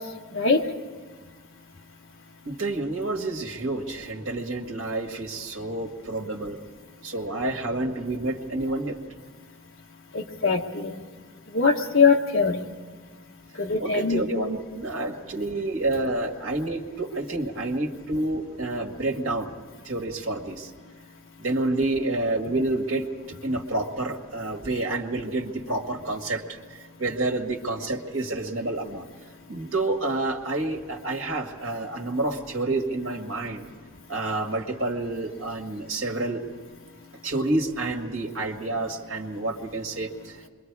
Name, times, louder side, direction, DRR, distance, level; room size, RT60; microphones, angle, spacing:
voice 1, 2.4-6.6 7.0-9.0 13.8-19.6 19.8-20.7 21.4-23.1 23.4-29.1 29.5-33.7 34.1-36.4 37.2-40.4, right 2 dB, 60° right, 1 dB, 1.9 m, -29 dB
voice 2, 10.1-11.0 11.5-12.7 13.6-14.2, left 5 dB, 60° left, 2 dB, 1.4 m, -22 dB
26.5 x 23.0 x 4.8 m, 1.5 s
head